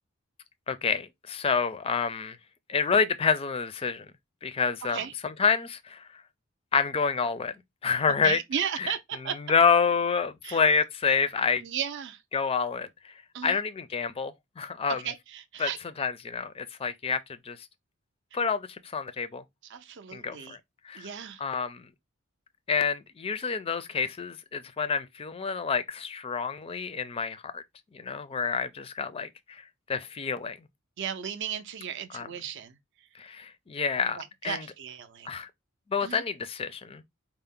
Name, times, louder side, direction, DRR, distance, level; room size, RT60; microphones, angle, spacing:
voice 1, 0.7-2.4 2.7-4.1 4.4-6.2 6.7-7.5 7.8-8.4 8.8-8.9 9.4-11.6 12.3-13.1 13.4-15.0 15.6-15.7 16.0-17.6 18.3-19.4 20.1-20.6 20.8-21.1 21.4-21.9 22.7-27.6 27.9-29.6 29.9-30.6 32.1-32.3 33.1-34.2 34.4-34.7 35.3-35.5 35.9-37.0, left 5 dB, 25° left, 0.4 m, -28 dB
voice 2, 4.8-5.1 8.2-9.4 10.4-10.6 11.6-12.2 13.3-13.6 14.9-15.8 19.6-20.6 20.9-21.4 31.0-32.8 34.1-35.3 36.0-36.2, right 8 dB, 55° right, 0.5 m, -35 dB
4.4 x 2.0 x 3.6 m
head